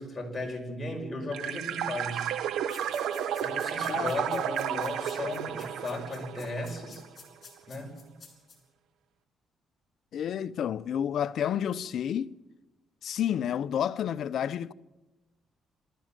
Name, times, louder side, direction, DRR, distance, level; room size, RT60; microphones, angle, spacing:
voice 1, 0.0-2.3 3.4-7.0 7.7-8.0, left 2 dB, 20° left, 5.5 m, -36 dB
sound 1, 1.3-7.1, right 9 dB, 80° right, 1.1 m, -32 dB
sound 2, 2.7-8.6, left 5 dB, 45° left, 7.3 m, -52 dB
voice 2, 3.9-4.4 10.1-12.4 13.0-14.7, left 9 dB, 65° left, 0.6 m, -30 dB
26.5 x 13.5 x 7.5 m
cardioid pair, 90°, 0 cm